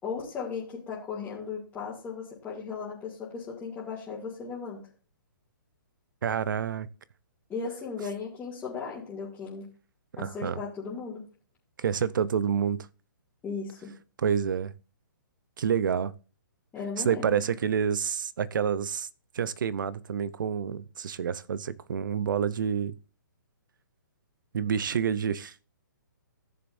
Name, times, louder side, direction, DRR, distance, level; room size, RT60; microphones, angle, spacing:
voice 1, 0.0-4.8 7.5-9.7 10.2-11.2 13.4-13.9 16.7-17.4, left 5 dB, 15° left, 2.5 m, -36 dB
voice 2, 6.2-6.9 10.1-10.6 11.8-12.9 14.2-14.7 15.6-16.1 17.0-19.1 19.3-23.0 24.5-25.7, right 7 dB, 65° right, 0.7 m, -28 dB
15.0 x 6.9 x 2.6 m
hypercardioid pair, 145°, 11 cm